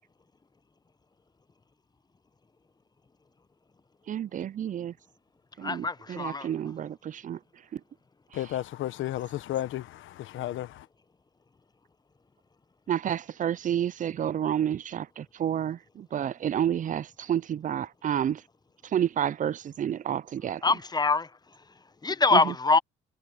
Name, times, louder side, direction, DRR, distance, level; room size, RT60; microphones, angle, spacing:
voice 1, 4.1-4.9 5.6-7.4 7.7-7.8 12.9-18.4 18.8-20.6 22.3-22.5, right 10 dB, 40° right, 0.4 m, -30 dB
voice 2, 5.6-6.5 20.6-21.3 22.0-22.8, left 3 dB, 20° left, 0.8 m, -24 dB
voice 3, 8.3-10.9, left 13 dB, 80° left, 1.1 m, -33 dB
cardioid pair, 90°, 20 cm